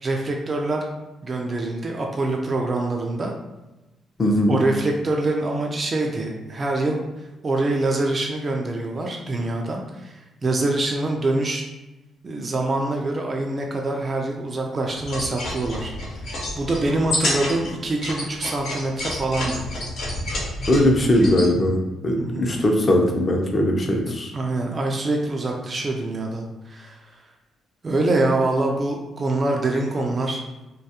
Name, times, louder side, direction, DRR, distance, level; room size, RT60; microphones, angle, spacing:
voice 1, 0.0-0.9 1.2-3.3 4.5-7.0 7.4-11.6 12.2-15.9 16.2-19.6 22.2-22.5 24.3-27.0 27.8-30.4, right 2 dB, 35° right, 1 dB, 0.3 m, -25 dB
voice 2, 4.2-4.6 20.7-24.3, left 1 dB, 30° left, 2 dB, 0.5 m, -20 dB
sound 1, 15.0-21.5, left 1 dB, 70° left, 0.9 m, -29 dB
2.3 x 2.3 x 2.8 m, 1.0 s
cardioid pair, 90°, 0 cm